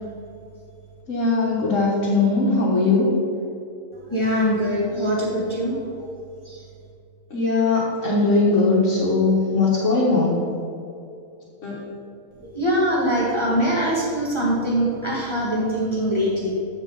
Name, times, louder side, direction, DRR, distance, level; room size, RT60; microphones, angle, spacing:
voice 1, 1.1-3.1 7.3-10.4 11.6-11.8, left 3 dB, 65° left, -7 dB, 1.8 m, -20 dB
voice 2, 3.9-5.8 6.4-6.6 12.4-16.5, equal, 20° left, -5 dB, 1.6 m, -23 dB
14.0 x 4.9 x 4.0 m, 2.6 s
omnidirectional pair, 1.4 m